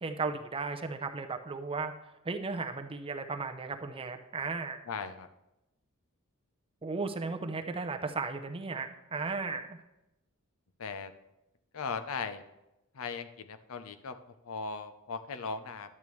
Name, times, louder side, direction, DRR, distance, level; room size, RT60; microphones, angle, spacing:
voice 1, 0.0-1.9 2.2-4.8 6.8-9.8, right 4 dB, 25° right, 6 dB, 0.6 m, -35 dB
voice 2, 4.9-5.3 10.8-11.1 11.7-12.4 12.9-14.2 14.4-15.9, left 5 dB, 70° left, 10 dB, 0.6 m, -38 dB
11.0 x 8.5 x 3.1 m, 0.93 s
head